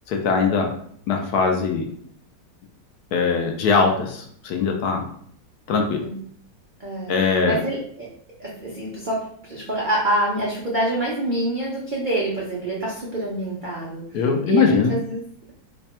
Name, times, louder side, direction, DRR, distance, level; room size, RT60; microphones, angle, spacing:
voice 1, 0.1-0.7 1.1-1.9 3.1-5.0 5.7-6.0 7.1-7.6 14.1-14.9, left 5 dB, 70° left, 3 dB, 1.0 m, -21 dB
voice 2, 6.8-7.1 7.4-8.1 8.4-15.5, right 1 dB, 75° right, -5 dB, 0.4 m, -26 dB
3.3 x 2.2 x 4.1 m, 0.62 s
omnidirectional pair, 1.9 m